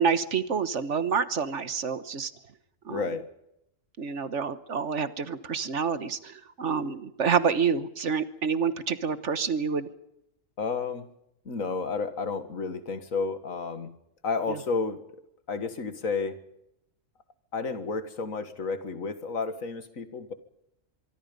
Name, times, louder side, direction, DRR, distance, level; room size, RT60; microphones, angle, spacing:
voice 1, 0.0-2.3 2.8-3.1 4.0-9.9 14.5-14.6, right 6 dB, 60° right, 13 dB, 1.6 m, -28 dB
voice 2, 2.9-3.2 10.6-11.1 11.5-13.9 14.2-15.2 15.5-16.4 17.5-20.3, left 4 dB, 85° left, 11 dB, 2.2 m, -31 dB
24.5 x 24.0 x 5.4 m, 0.81 s
omnidirectional pair, 1.4 m